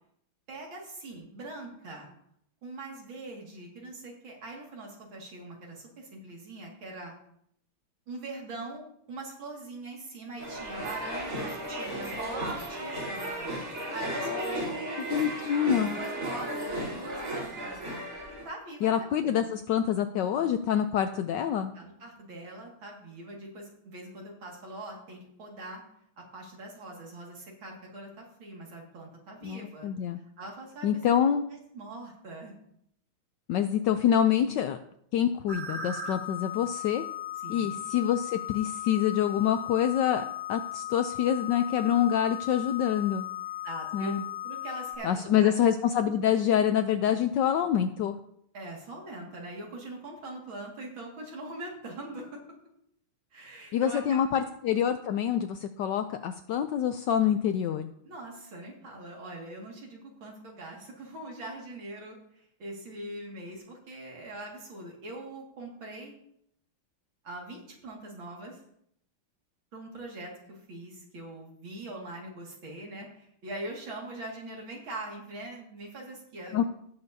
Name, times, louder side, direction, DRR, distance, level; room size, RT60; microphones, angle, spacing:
voice 1, 0.5-2.1 2.6-7.1 8.1-13.5 13.9-14.9 15.7-17.8 18.4-19.6 21.7-25.8 26.3-29.9 30.2-30.9 31.5-32.5 37.4-37.8 43.6-44.2 44.4-45.6 48.5-52.4 53.3-54.5 58.0-66.1 67.2-68.6 69.7-76.6, right 2 dB, 65° right, -1 dB, 2.9 m, -42 dB
sound 1, 10.4-18.4, right 1 dB, 45° right, 4.1 m, -35 dB
voice 2, 14.2-14.7 15.1-16.0 18.8-21.7 29.4-30.2 30.8-31.4 33.5-34.8 35.1-37.0 37.5-43.3 43.9-44.2 45.0-48.2 53.7-57.9 76.5-76.6, left 9 dB, 75° left, 8 dB, 1.0 m, -26 dB
sound 2, 35.5-45.0, left 10 dB, 30° right, 1.2 m, -37 dB
17.5 x 6.9 x 2.7 m, 0.71 s
omnidirectional pair, 2.3 m